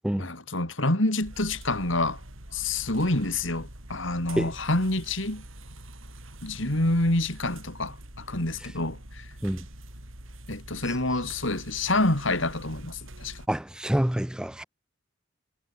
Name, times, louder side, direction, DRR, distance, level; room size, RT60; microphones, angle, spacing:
voice 1, 0.2-2.2 2.5-5.4 6.4-9.3 10.5-13.4, left 2 dB, 70° left, 4.0 m, -27 dB
sound 1, 1.2-13.5, right 1 dB, 80° right, 5.2 m, -45 dB
voice 2, 13.5-14.6, equal, 5° right, 0.3 m, -27 dB
head